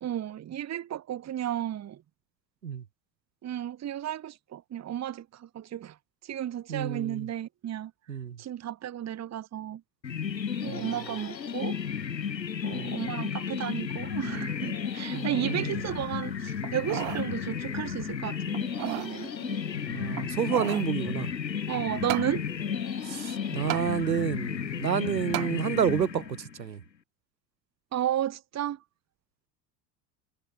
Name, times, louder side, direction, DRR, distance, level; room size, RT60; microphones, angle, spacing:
voice 1, 0.0-2.0 3.4-5.9 6.2-7.9 8.4-9.8 10.6-11.8 12.6-19.6 21.7-22.4 27.9-28.8, right 11 dB, 30° right, 1.6 m, -33 dB
voice 2, 6.7-7.3 8.1-8.4 10.7-10.9 12.7-13.0 15.1-15.8 19.9-21.3 23.0-26.8, right 8 dB, 80° right, 3.8 m, -30 dB
sound 1, 10.0-26.6, left 7 dB, 85° left, 4.6 m, -33 dB
sound 2, 16.6-17.3 17.7-17.8 18.5-19.1 20.1-20.9 22.1-22.3 23.7-23.9 25.3-25.5 26.1-26.2, right 33 dB, 60° right, 5.4 m, -34 dB
figure-of-eight pair, 70°, 50 cm